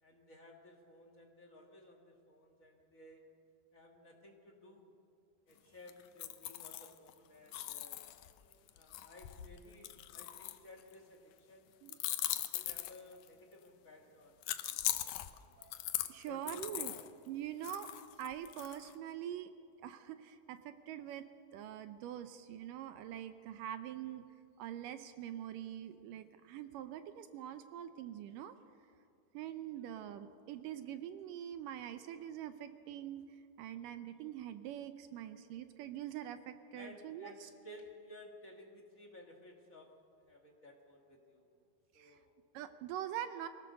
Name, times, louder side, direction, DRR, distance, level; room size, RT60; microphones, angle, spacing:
voice 1, 0.0-3.2 3.7-4.9 5.5-8.0 8.7-11.9 12.5-14.4 14.9-15.5 16.3-16.9 36.7-39.9 40.3-41.5 41.9-42.3, left 1 dB, 45° left, 1 dB, 1.1 m, -56 dB
sound 1, 5.9-7.1 7.5-10.9 11.9-13.3 14.4-17.1 17.6-18.9, left 14 dB, 75° left, 1.8 m, -40 dB
voice 2, 16.1-16.9 17.3-17.9 18.2-19.5 19.8-21.3 21.5-24.3 24.6-28.5 29.3-33.2 33.6-37.5 41.9-42.2 42.5-43.5, right 11 dB, 80° right, 10 dB, 2.1 m, -44 dB
23.5 x 16.5 x 6.7 m, 2.5 s
omnidirectional pair, 4.2 m